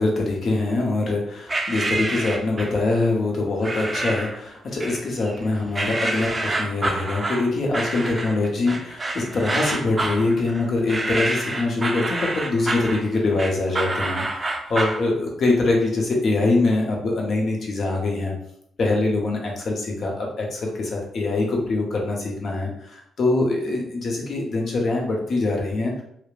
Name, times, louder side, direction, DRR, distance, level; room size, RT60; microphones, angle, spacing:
voice 1, 0.0-18.3 18.8-25.9, left 2 dB, 60° left, 0 dB, 0.7 m, -24 dB
sound 1, 1.5-2.8 3.6-4.4 4.8-5.4 5.7-15.0, right 2 dB, 30° right, 0.4 m, -27 dB
2.9 x 2.0 x 2.3 m, 0.71 s
supercardioid pair, 60°, 0 cm